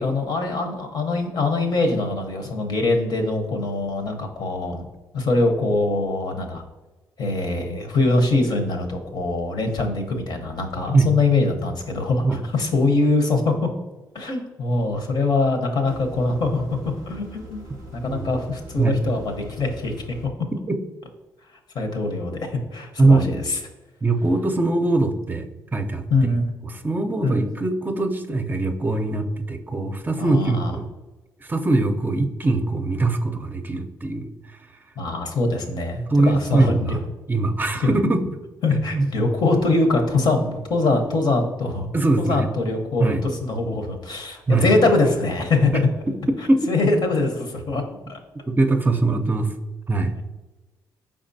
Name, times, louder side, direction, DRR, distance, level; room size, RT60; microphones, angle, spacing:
voice 1, 0.0-4.8 5.1-6.6 7.2-13.7 14.1-16.6 17.1-17.7 18.0-19.9 21.7-23.6 26.1-26.5 27.2-27.4 30.2-30.7 35.0-37.0 37.8-37.9 38.6-41.9 42.2-45.9 46.7-47.8 48.1-48.2, left 2 dB, 65° left, 4 dB, 0.9 m, -23 dB
sound 1, 15.9-20.3, right 1 dB, 90° left, 1.3 m, -42 dB
voice 2, 23.0-23.3 24.0-25.4 25.7-26.0 26.6-30.9 31.4-34.6 36.1-37.0 37.3-38.3 38.9-39.1 41.9-42.5 43.0-43.3 44.5-44.7 46.5-46.7 48.5-49.5 49.9-50.1, right 2 dB, 25° right, 5 dB, 0.5 m, -21 dB
5.0 x 3.6 x 2.6 m, 1.1 s
supercardioid pair, 55°, 8 cm